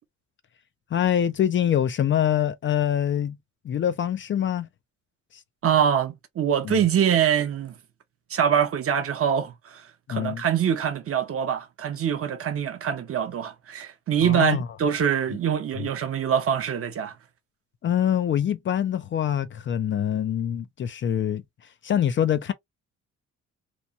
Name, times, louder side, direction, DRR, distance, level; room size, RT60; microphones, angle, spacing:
voice 1, 0.9-3.4 3.6-4.7 6.6-6.8 10.1-10.4 14.2-14.7 15.8-15.9 17.8-21.4 21.8-22.5, left 10 dB, 40° left, 0.4 m, -24 dB
voice 2, 5.6-7.7 8.3-9.8 10.1-17.2, right 8 dB, 50° right, 0.7 m, -24 dB
2.9 x 2.2 x 2.4 m
cardioid pair, 90°, 30 cm